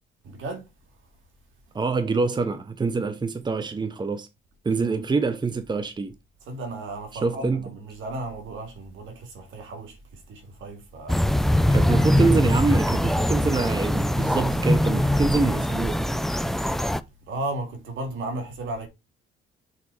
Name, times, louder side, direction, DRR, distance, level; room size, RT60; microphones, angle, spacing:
voice 1, 0.2-1.0 4.7-5.0 6.4-11.5 17.2-18.9, right 2 dB, 75° right, 2.7 m, -35 dB
voice 2, 1.7-4.3 4.6-6.1 7.2-7.6 11.7-16.0, right 4 dB, 20° right, 0.9 m, -25 dB
sound 1, 11.1-17.0, left 1 dB, ahead, 0.5 m, -22 dB
6.6 x 4.1 x 4.9 m
cardioid pair, 90°, 20 cm